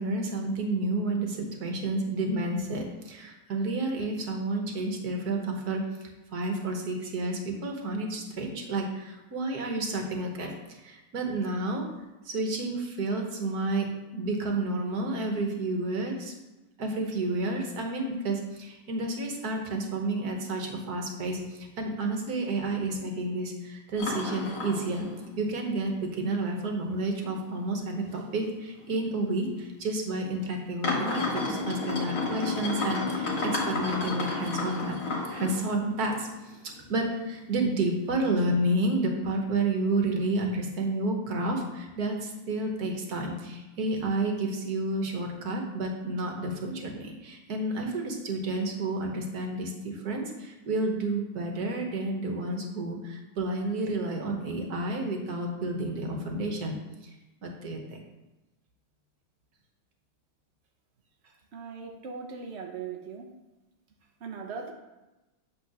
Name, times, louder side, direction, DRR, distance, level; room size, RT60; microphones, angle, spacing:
voice 1, 0.0-5.8 6.3-11.9 12.2-16.3 16.8-25.1 25.4-35.0 35.3-36.6 36.9-56.8 57.4-57.8, right 2 dB, 55° right, 2 dB, 1.5 m, -30 dB
Beer Bottle Spin Hardwood Floor, 24.0-25.4 25.8-25.9 26.6-26.7 27.2-27.4 27.7-27.8 28.8-28.9 29.6-29.7 30.8-35.7 36.1-36.8 37.3-37.4, left 3 dB, 60° left, 2.3 m, -31 dB
voice 2, 61.5-63.3 64.2-64.7, right 5 dB, 90° right, 3 dB, 0.5 m, -39 dB
8.5 x 3.7 x 6.1 m, 1.0 s
omnidirectional pair, 2.3 m